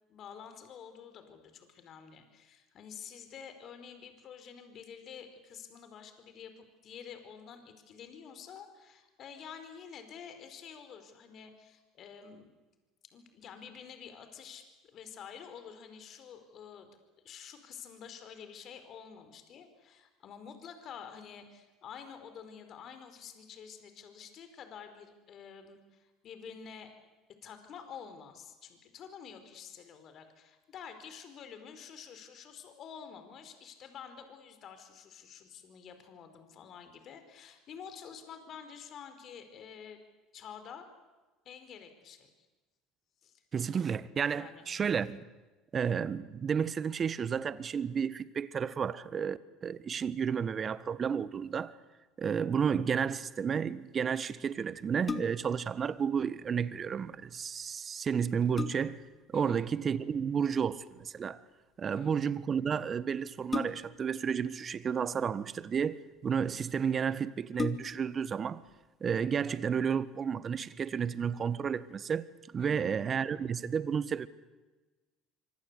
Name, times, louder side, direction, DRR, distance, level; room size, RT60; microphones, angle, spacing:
voice 1, 0.1-12.5 13.1-14.6 14.9-16.9 17.2-26.9 27.4-40.0 40.3-40.9 41.4-42.3 43.2-43.4 44.3-44.7 59.3-59.6 61.8-62.1 72.6-72.9, left 7 dB, 50° left, 4.8 m, -49 dB
voice 2, 43.5-45.2 45.7-51.7 52.2-59.0 59.3-61.4 61.8-68.6 69.0-72.3 72.5-74.3, right 7 dB, 40° right, 1.4 m, -32 dB
sound 1, 55.0-55.6 57.6-57.7 58.2-59.1 60.7-61.0 63.5-64.1 65.1-65.8 66.5-66.6 66.9-67.0 67.5-68.2 68.7-68.8, left 4 dB, 30° left, 2.6 m, -38 dB
25.5 x 25.0 x 8.4 m
hypercardioid pair, 75°, 0 cm